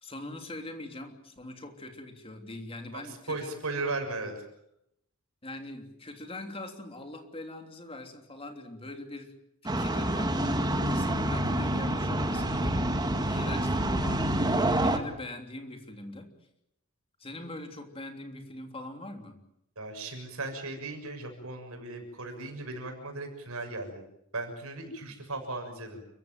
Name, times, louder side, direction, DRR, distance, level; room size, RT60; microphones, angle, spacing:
voice 1, 0.0-3.5 5.4-9.3 9.6-14.3 14.8-16.3 17.2-19.4, left 2 dB, 25° left, 5 dB, 3.2 m, -42 dB
voice 2, 3.1-4.3 19.8-24.0 24.3-26.0, right 2 dB, 75° right, 5 dB, 6.7 m, -36 dB
sound 1, 9.7-15.0, right 1 dB, 20° right, 2.0 m, -27 dB
29.5 x 16.0 x 9.3 m, 0.78 s
head